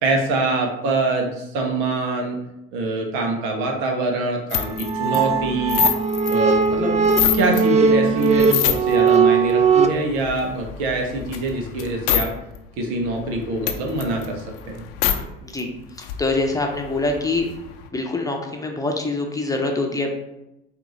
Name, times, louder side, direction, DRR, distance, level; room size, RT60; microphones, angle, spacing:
voice 1, 0.0-2.4 2.7-5.8 6.3-7.0 7.3-12.3 12.8-14.9, right 2 dB, 75° right, 1 dB, 1.1 m, -24 dB
sound 1, 4.5-7.7 8.1-9.1 9.5-12.3 12.5-12.6 13.0-15.2 15.6-15.7 15.9-17.9, left 11 dB, 75° left, 0.6 m, -27 dB
sound 2, 4.6-9.9, right 5 dB, 25° right, 0.4 m, -19 dB
voice 2, 15.4-15.7 16.0-17.5 17.9-20.2, left 2 dB, 10° left, 1 dB, 0.8 m, -24 dB
4.4 x 2.7 x 4.0 m, 0.89 s
hypercardioid pair, 75°, 29 cm